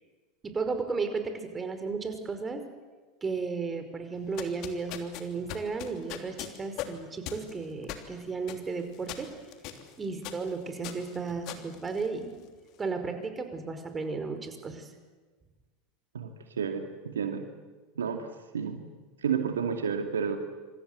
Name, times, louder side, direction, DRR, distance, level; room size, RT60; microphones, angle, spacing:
voice 1, 0.4-2.6 3.2-9.3 10.0-12.4 12.8-14.9, right 4 dB, 20° right, 7 dB, 5.2 m, -34 dB
sound 1, 4.2-12.6, left 11 dB, 55° left, 3.2 m, -42 dB
voice 2, 16.1-17.4 18.0-18.3 18.5-18.9 19.2-20.4, right 7 dB, 80° right, 5 dB, 2.3 m, -31 dB
26.5 x 26.5 x 8.2 m, 1.4 s
figure-of-eight pair, 80°, 0 cm